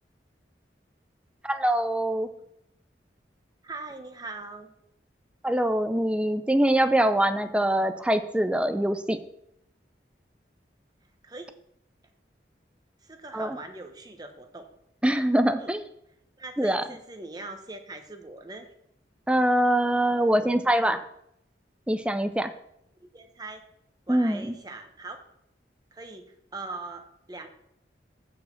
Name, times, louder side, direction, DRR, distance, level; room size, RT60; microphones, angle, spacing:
voice 1, 1.4-2.3 5.4-9.2 13.3-13.6 15.0-15.9 16.6-16.8 19.3-21.0 21.9-22.5 24.1-24.5, right 1 dB, 5° right, 10 dB, 0.4 m, -24 dB
voice 2, 3.6-4.7 11.2-11.5 13.0-14.7 15.6-15.7 16.4-18.7 23.0-23.6 24.1-25.2 25.9-27.5, right 2 dB, 20° right, 6 dB, 0.9 m, -41 dB
8.6 x 5.0 x 7.1 m, 0.77 s
head